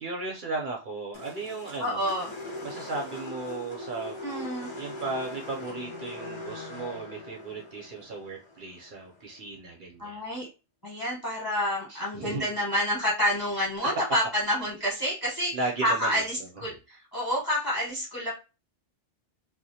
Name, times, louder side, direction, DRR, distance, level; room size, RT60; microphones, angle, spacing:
voice 1, 0.0-2.1 2.6-4.2 4.8-10.2 11.9-12.5 15.5-16.5, right 3 dB, 55° right, -1 dB, 0.6 m, -36 dB
sound 1, 1.1-9.4, left 1 dB, 45° left, 0.4 m, -41 dB
voice 2, 1.8-2.3 4.2-4.7 10.0-10.5 10.8-15.5 15.8-18.3, equal, 20° left, -5 dB, 0.8 m, -28 dB
2.3 x 2.0 x 2.6 m, 0.30 s
omnidirectional pair, 1.2 m